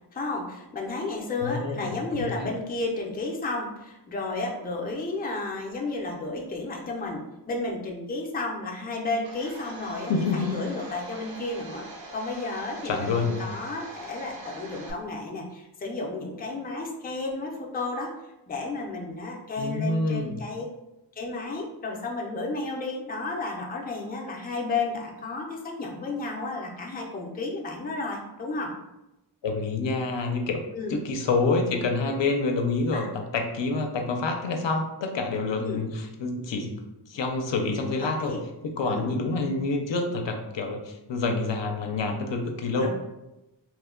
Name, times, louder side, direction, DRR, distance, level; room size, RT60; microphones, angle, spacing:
voice 1, 0.1-11.8 12.1-18.1 18.5-20.6 21.2-28.7 30.7-31.0 32.9-33.1 35.6-35.8 38.0-38.4 38.8-39.1 42.8-42.9, left 3 dB, 20° left, -1 dB, 0.5 m, -32 dB
voice 2, 1.4-2.5 10.1-10.5 12.8-13.4 19.6-20.4 29.4-30.6 30.9-36.7 37.1-38.3 38.6-42.9, left 3 dB, 70° left, 3 dB, 0.6 m, -27 dB
Domestic sounds home sounds, 9.2-14.9, right 2 dB, 50° right, 0.6 m, -43 dB
3.1 x 2.1 x 3.6 m, 0.95 s
wide cardioid pair, 110°, 47 cm